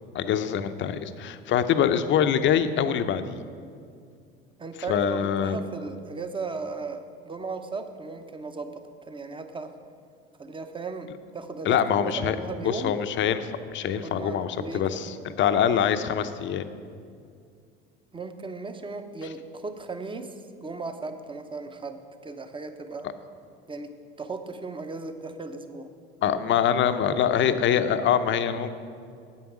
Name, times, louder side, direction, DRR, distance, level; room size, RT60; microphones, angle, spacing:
voice 1, 0.1-3.4 4.9-5.6 11.6-12.4 12.6-16.6 26.2-28.7, left 8 dB, 40° left, 10 dB, 0.7 m, -24 dB
voice 2, 4.6-9.7 10.4-12.9 13.9-15.1 18.1-23.1 23.7-23.9 24.2-25.9, right 3 dB, 15° right, 8 dB, 0.9 m, -36 dB
9.6 x 8.5 x 6.1 m, 2.3 s
hypercardioid pair, 70°, 29 cm